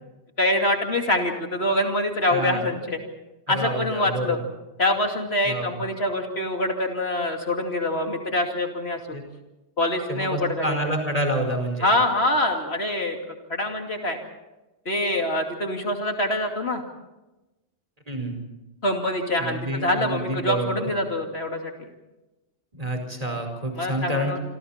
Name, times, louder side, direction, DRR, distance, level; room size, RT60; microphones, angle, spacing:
voice 1, 0.4-3.0 3.5-4.4 4.8-9.2 9.8-10.8 11.8-14.2 14.9-16.8 18.8-21.9 23.8-24.4, left 1 dB, 60° left, 3 dB, 2.9 m, -25 dB
voice 2, 2.3-2.6 3.5-4.4 5.5-5.8 9.1-9.2 10.1-11.9 18.1-18.4 19.4-20.9 22.7-24.4, right 1 dB, 30° right, 4 dB, 5.2 m, -28 dB
27.5 x 26.0 x 4.4 m, 1.0 s
omnidirectional pair, 1.2 m